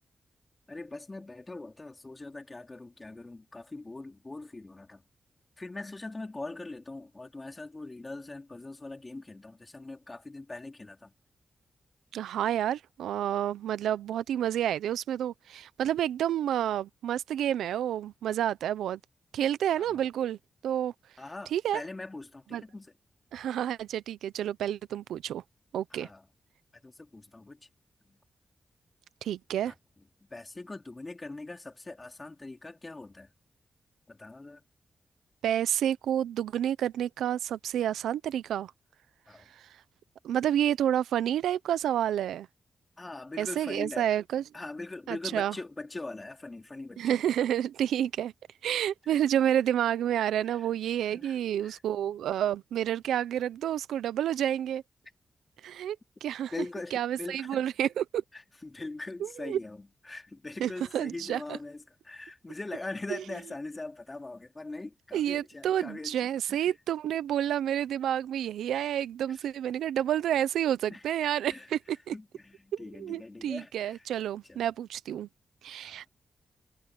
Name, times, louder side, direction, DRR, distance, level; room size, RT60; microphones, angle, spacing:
voice 1, 0.7-5.0 5.6-11.1 19.8-20.1 21.2-22.9 25.9-26.2 26.8-27.7 28.1-28.2 29.7-29.8 30.3-33.3 34.1-34.6 39.3-39.5 43.0-44.1 44.5-47.2 50.4-50.6 51.1-51.8 56.5-57.6 58.3-66.7 69.3-69.5 70.9-71.0 71.5-71.7 72.1-74.0 74.5-74.7 75.8-76.0, left 2 dB, 30° left, 4.3 m, -42 dB
voice 2, 12.1-19.0 19.3-20.4 20.6-20.9 21.5-21.8 22.5-22.6 23.3-25.4 25.7-26.1 29.2-29.7 35.4-38.7 40.2-42.5 43.4-44.4 45.1-45.5 47.0-48.3 48.6-54.8 55.6-56.0 56.2-56.5 56.9-58.2 59.2-59.6 60.6-61.4 63.1-63.2 65.1-72.1 73.0-75.3 75.6-76.1, right 10 dB, 90° right, 0.7 m, -29 dB
supercardioid pair, 45°, 0 cm